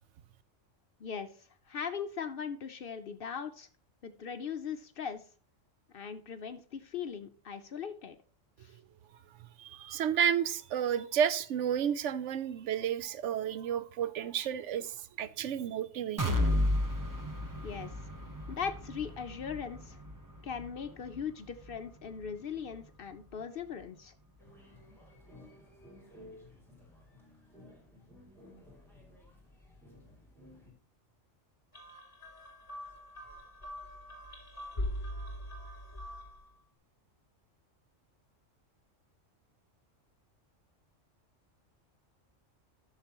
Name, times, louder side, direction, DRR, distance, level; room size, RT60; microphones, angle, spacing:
voice 1, 1.7-3.7 4.0-5.2 5.9-8.2 8.6-8.7 17.6-17.9 18.5-20.0 20.4-24.1, left 7 dB, 60° left, 0.7 m, -39 dB
voice 2, 9.6-16.4, right 8 dB, 70° right, 0.9 m, -31 dB
sound 1, 16.2-24.0 24.4-24.5 24.9-25.0, left 1 dB, 20° right, 0.8 m, -35 dB
sound 2, 24.4-30.7, left 1 dB, ahead, 2.7 m, -55 dB
sound 3, 31.7-36.5, left 1 dB, 25° left, 2.6 m, -41 dB
13.0 x 6.7 x 2.9 m
omnidirectional pair, 1.3 m